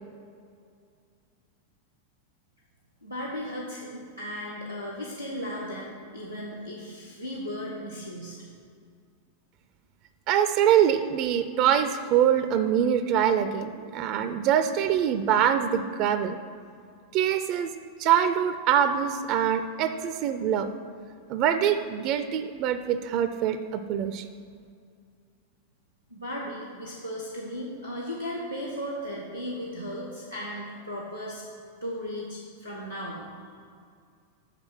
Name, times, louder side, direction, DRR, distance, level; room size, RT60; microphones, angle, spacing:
voice 1, 3.0-8.4 26.1-31.4 31.8-33.3, equal, 90° left, -5 dB, 1.0 m, -36 dB
voice 2, 10.3-16.4 17.1-17.7 18.0-20.7 21.3-24.3, right 9 dB, 40° right, 10 dB, 0.4 m, -24 dB
6.4 x 5.8 x 6.0 m, 2.3 s
figure-of-eight pair, 90°, 0 cm